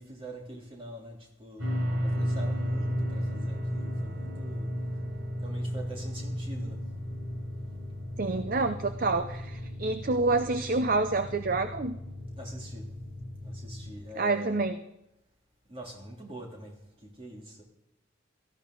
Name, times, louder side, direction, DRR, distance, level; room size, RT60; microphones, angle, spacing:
voice 1, 0.0-4.8 5.4-6.9 12.4-12.9 13.4-14.6 15.7-17.6, right 1 dB, 25° right, -1 dB, 3.0 m, -45 dB
sound 1, 1.6-13.9, equal, 75° right, 6.6 m, -34 dB
voice 2, 8.2-12.0 14.2-14.8, right 3 dB, 45° right, 9 dB, 0.6 m, -28 dB
17.5 x 14.0 x 3.9 m, 0.90 s
head